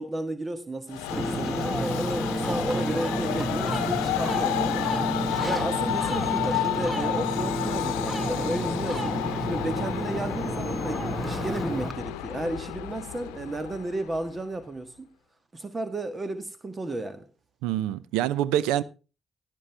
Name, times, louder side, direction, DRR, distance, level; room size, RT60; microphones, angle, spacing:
voice 1, 0.0-4.9 5.4-9.1 9.4-15.1 15.5-17.2, right 2 dB, 35° right, 1.5 m, -33 dB
Train, 0.9-14.4, left 14 dB, 85° left, 0.8 m, -31 dB
Ocean, 1.1-11.9, right 1 dB, 10° right, 2.2 m, -30 dB
voice 2, 17.6-18.8, right 12 dB, 85° right, 0.6 m, -25 dB
16.0 x 7.7 x 3.4 m
hypercardioid pair, 40°, 0 cm